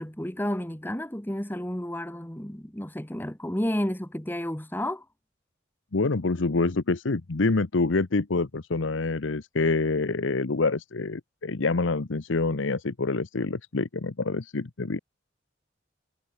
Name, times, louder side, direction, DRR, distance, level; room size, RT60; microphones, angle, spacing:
voice 1, 0.0-5.0, left 1 dB, 10° left, 1.3 m, -31 dB
voice 2, 5.9-15.0, left 3 dB, 85° left, 0.9 m, -26 dB
head